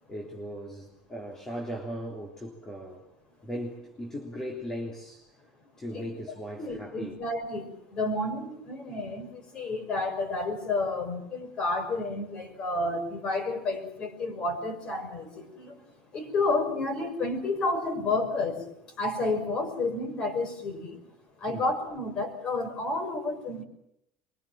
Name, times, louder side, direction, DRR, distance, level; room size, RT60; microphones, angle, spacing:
voice 1, 0.1-3.1 3.4-5.3 5.8-7.2 21.5-21.6, equal, 15° left, -1 dB, 3.4 m, -38 dB
voice 2, 6.6-21.0 21.4-23.6, left 2 dB, 35° left, 6 dB, 6.1 m, -31 dB
24.5 x 23.5 x 7.5 m, 0.78 s
cardioid pair, 150°, 3 cm